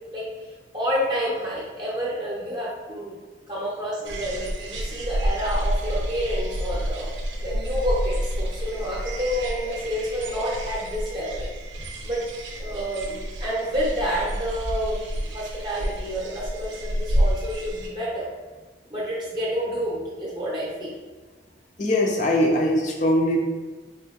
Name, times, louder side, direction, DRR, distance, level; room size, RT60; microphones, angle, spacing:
voice 1, 0.1-3.1 3.5-7.1 7.4-11.5 11.8-12.3 12.6-18.3 18.9-20.9, equal, 25° right, -7 dB, 0.7 m, -29 dB
sound 1, 4.1-17.9, equal, 80° right, 0.5 m, -29 dB
voice 2, 21.8-23.4, left 1 dB, 40° left, 0 dB, 0.5 m, -21 dB
3.4 x 2.7 x 2.9 m, 1.3 s
head